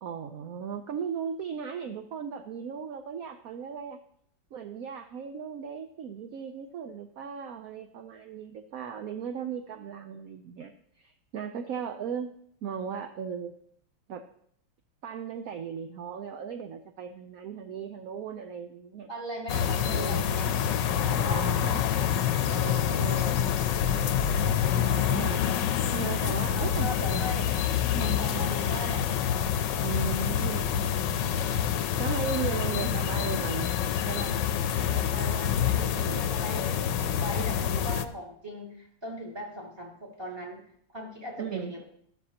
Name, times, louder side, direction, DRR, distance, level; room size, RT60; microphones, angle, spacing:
voice 1, 0.0-4.0 4.5-12.3 12.6-13.5 14.1-14.2 15.0-19.1 19.8-20.2 21.2-21.9 22.5-27.5 27.9-28.7 29.8-31.4 32.0-33.7 34.1-34.4 34.8-36.4 37.4-37.6 41.4-41.8, right 7 dB, 65° right, 7 dB, 0.9 m, -37 dB
voice 2, 19.1-20.5 20.9-21.4 26.6-27.5 28.2-29.1 35.7-41.8, equal, 15° right, -1 dB, 2.0 m, -39 dB
sound 1, 19.5-38.0, left 9 dB, 75° left, 1.3 m, -27 dB
13.0 x 12.5 x 2.9 m, 0.65 s
omnidirectional pair, 2.1 m